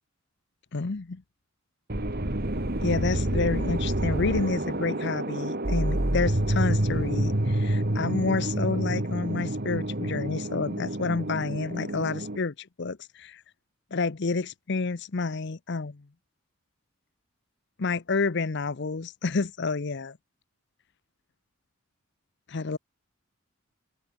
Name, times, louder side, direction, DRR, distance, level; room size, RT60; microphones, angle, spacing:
voice 1, 0.7-1.2 2.8-13.4 13.9-16.0 17.8-20.2 22.5-22.8, left 4 dB, 55° left, 0.7 m, -29 dB
sound 1, 1.9-12.4, right 1 dB, 45° right, 2.1 m, -28 dB
open air
head